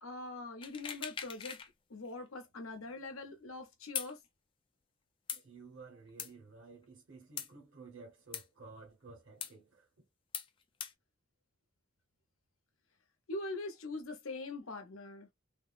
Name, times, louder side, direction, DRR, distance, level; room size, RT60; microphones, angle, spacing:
voice 1, 0.0-1.6 1.9-4.2 13.3-15.3, left 2 dB, 85° left, 0.9 m, -43 dB
sound 1, 0.6-1.7 2.1-2.2 4.0-4.1 5.3-5.4 6.2-6.3 7.4-7.5 8.3-8.4 9.4-9.5 10.3-10.5 10.8-10.9, left 8 dB, 25° left, 0.3 m, -40 dB
voice 2, 5.3-10.0, right 3 dB, 65° right, 0.9 m, -54 dB
3.4 x 2.0 x 2.4 m
head